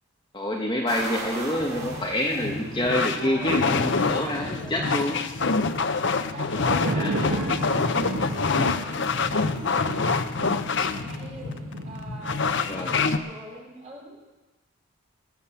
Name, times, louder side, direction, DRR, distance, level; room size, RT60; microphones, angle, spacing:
voice 1, 0.3-5.2 6.9-7.1 12.6-13.0, left 1 dB, 20° left, 0 dB, 1.3 m, -27 dB
sound 1, 0.9-5.4, right 2 dB, 55° right, 5.4 m, -39 dB
sound 2, 1.6-13.2, left 4 dB, 55° left, 0.7 m, -26 dB
voice 2, 3.2-5.3 6.2-7.5 7.8-8.7 10.9-11.5 11.8-14.4, right 1 dB, 35° right, -4 dB, 4.8 m, -42 dB
sound 3, 6.4-13.4, right 2 dB, 75° right, 1.2 m, -34 dB
19.0 x 8.4 x 7.1 m, 1.1 s
head